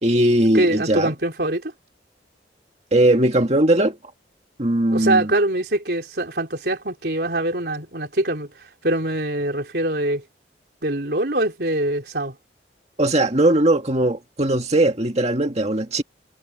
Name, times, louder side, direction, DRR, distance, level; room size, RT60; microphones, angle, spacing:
voice 1, 0.0-1.1 2.9-4.0 4.6-5.3 13.0-16.0, right 1 dB, 35° right, 2.0 m, -19 dB
voice 2, 0.5-1.7 4.9-8.5 8.8-10.2 10.8-12.4, right 1 dB, 60° right, 4.0 m, -23 dB
head